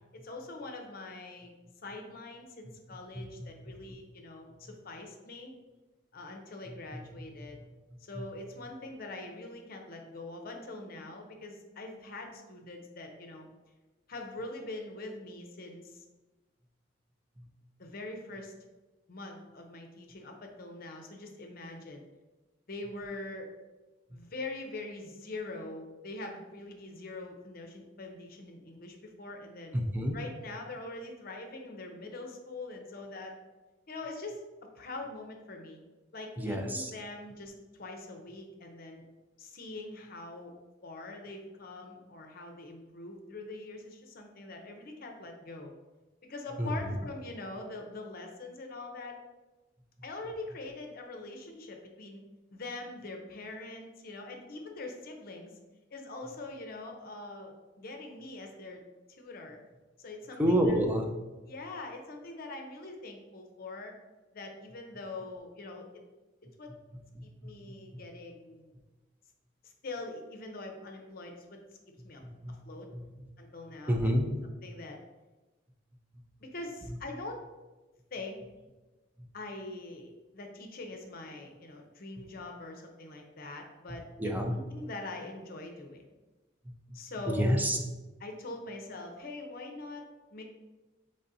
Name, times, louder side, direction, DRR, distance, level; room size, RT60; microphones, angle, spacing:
voice 1, 0.1-1.5 1.8-5.5 6.1-7.6 8.0-13.5 14.1-16.0 17.8-18.5 19.1-22.1 22.7-23.5 24.1-29.8 30.1-33.3 33.9-35.8 36.1-39.0 39.4-40.5 40.8-45.7 46.3-49.2 50.0-52.2 52.5-55.5 55.9-58.8 59.2-59.6 60.0-60.8 61.5-63.9 64.3-65.9 66.4-66.7 67.2-68.7 69.6-71.6 72.0-72.2 72.5-72.9 73.4-74.0 74.6-75.0 76.4-77.4 78.1-78.4 79.3-86.0 86.9-87.6 88.2-90.0 90.3-90.4, left 2 dB, 50° left, 3 dB, 0.7 m, -43 dB
voice 2, 3.1-3.7 6.7-7.6 8.1-8.2 17.4-17.5 29.7-30.2 36.4-36.9 46.6-46.9 60.4-61.1 67.1-68.0 72.2-72.6 72.9-73.1 73.9-74.4 79.2-79.3 84.2-84.5 86.6-87.0 87.3-87.8, equal, 10° right, 2 dB, 0.5 m, -30 dB
4.1 x 3.3 x 3.9 m, 1.1 s
head